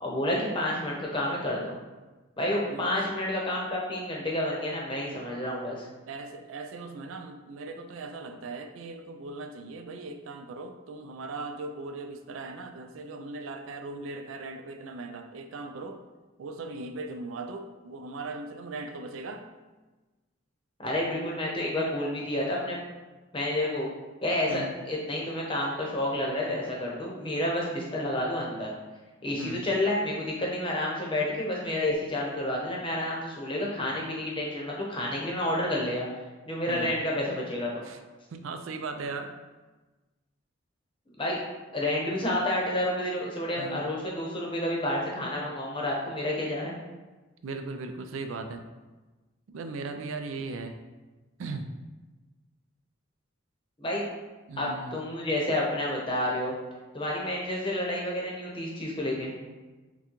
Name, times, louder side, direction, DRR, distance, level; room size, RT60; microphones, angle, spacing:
voice 1, 0.0-1.7 2.4-5.8 20.8-22.8 23.3-23.9 24.2-28.7 29.2-36.1 36.4-37.8 41.2-41.4 41.7-46.8 53.8-54.0 54.6-56.6 56.9-59.3, left 1 dB, 25° left, -3 dB, 0.8 m, -30 dB
voice 2, 2.6-3.1 6.1-16.0 16.4-19.5 24.5-24.7 29.4-29.7 36.7-36.9 37.8-38.0 38.3-39.3 43.6-43.8 47.4-48.6 49.5-50.8 51.4-51.7 54.5-55.0, right 3 dB, 80° right, 7 dB, 0.4 m, -38 dB
5.9 x 2.2 x 3.0 m, 1.2 s
head